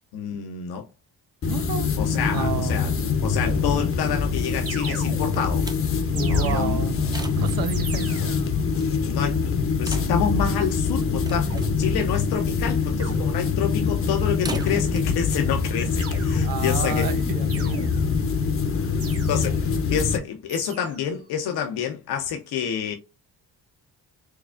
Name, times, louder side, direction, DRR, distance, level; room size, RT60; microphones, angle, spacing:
voice 1, 0.1-0.9 2.0-2.9 3.2-5.7 6.1-6.8 9.0-9.4 9.8-17.1 19.3-22.9, left 7 dB, 85° left, 0.7 m, -28 dB
sound 1, 1.4-20.2, left 5 dB, 35° left, 0.6 m, -24 dB
voice 2, 1.4-3.1 6.1-8.4 16.4-18.4, right 8 dB, 70° right, 0.7 m, -32 dB
sound 2, 3.4-4.1 4.7-5.6 6.2-7.1 7.7-8.6 11.5-12.0 13.0-13.7 14.5-15.2 16.0-16.7 17.5-18.2 19.0-19.7 20.5-21.2, right 4 dB, 40° right, 1.2 m, -39 dB
sound 3, 5.3-16.5, right 2 dB, 10° right, 0.5 m, -43 dB
4.6 x 2.3 x 2.3 m
cardioid pair, 100°, 37 cm